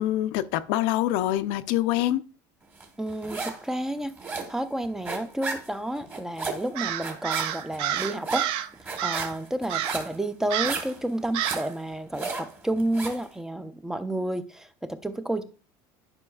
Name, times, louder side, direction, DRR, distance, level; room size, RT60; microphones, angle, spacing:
voice 1, 0.0-2.2, left 14 dB, 75° left, 0.5 m, -25 dB
sound 1, 2.8-3.7 3.9-13.3, right 3 dB, 20° right, 1.2 m, -35 dB
voice 2, 3.0-4.1 4.5-8.4 8.8-15.4, right 1 dB, 5° right, 0.4 m, -30 dB
Crow, 6.8-8.7 9.0-9.4 9.7-10.1 10.5-10.9 11.3-11.7, right 11 dB, 60° right, 0.5 m, -29 dB
10.5 x 5.3 x 2.3 m
cardioid pair, 155°, 10 cm